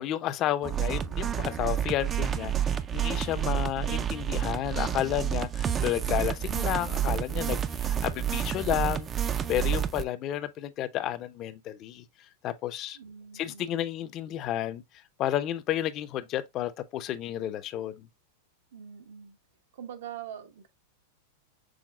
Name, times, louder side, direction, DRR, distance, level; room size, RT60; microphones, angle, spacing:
voice 1, 0.0-9.1 9.5-12.0 12.4-13.0 13.3-14.8 15.2-18.1, left 12 dB, 40° left, 0.6 m, -31 dB
sound 1, 0.6-10.0, right 9 dB, 25° right, 0.4 m, -29 dB
voice 2, 12.9-13.9 18.7-19.4 19.7-20.7, right 9 dB, 75° right, 1.1 m, -43 dB
6.4 x 3.5 x 2.3 m
hypercardioid pair, 120°, 0 cm